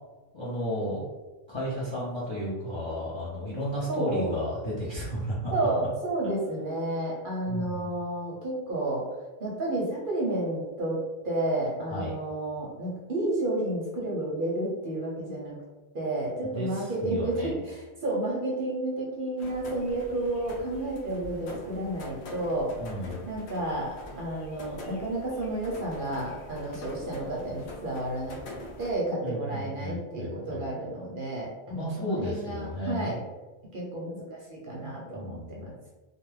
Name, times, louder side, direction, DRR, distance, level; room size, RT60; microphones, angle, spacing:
voice 1, 0.3-1.0 1.5-5.5 7.5-7.9 11.9-12.2 16.4-17.6 22.8-23.3 29.2-30.7 31.7-33.1 34.8-35.7, equal, 35° left, -7 dB, 0.4 m, -33 dB
voice 2, 3.9-4.3 5.5-9.1 9.4-15.6 15.9-22.8 23.3-28.4 28.8-33.2 33.7-35.7, right 1 dB, 55° right, -4 dB, 0.7 m, -31 dB
sound 1, 19.4-28.9, left 1 dB, 70° left, 0.8 m, -44 dB
2.3 x 2.2 x 3.2 m, 1.2 s
omnidirectional pair, 1.2 m